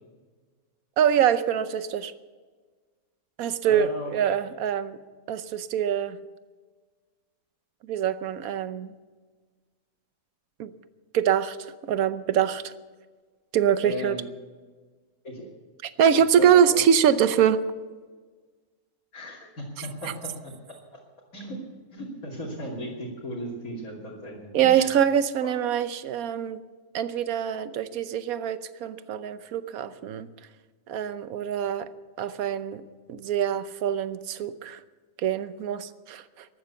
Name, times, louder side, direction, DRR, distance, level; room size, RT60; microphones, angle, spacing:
voice 1, 1.0-2.1 3.4-5.0 5.3-6.2 7.9-8.9 10.6-10.7 11.1-11.6 11.9-12.7 13.5-14.2 15.8-17.6 24.5-26.6 26.9-30.3 30.9-31.9 32.2-32.8 33.1-34.8 35.2-36.5, right 9 dB, 75° right, 13 dB, 1.2 m, -24 dB
voice 2, 3.6-4.4 13.8-14.2 15.2-15.5 16.3-16.8 19.1-20.5 21.3-21.6 21.9-25.0 25.4-25.5, equal, 75° left, -5 dB, 3.4 m, -36 dB
14.5 x 12.0 x 7.1 m, 1.4 s
omnidirectional pair, 1.5 m